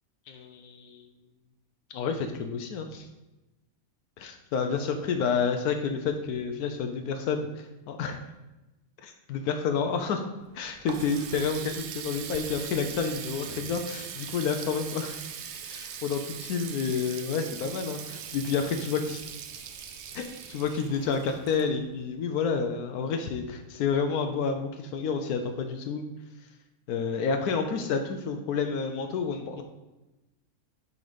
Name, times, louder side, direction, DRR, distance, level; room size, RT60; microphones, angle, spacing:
voice 1, 0.3-1.1 1.9-3.1 4.2-8.2 9.0-10.2 10.5-15.2 15.7-19.2 20.1-26.1 26.9-29.6, left 5 dB, 85° left, 6 dB, 1.2 m, -29 dB
Water tap faucet, 10.4-22.1, right 7 dB, 60° right, 0.7 m, -41 dB
6.9 x 4.0 x 5.1 m, 1.0 s
omnidirectional pair, 1.6 m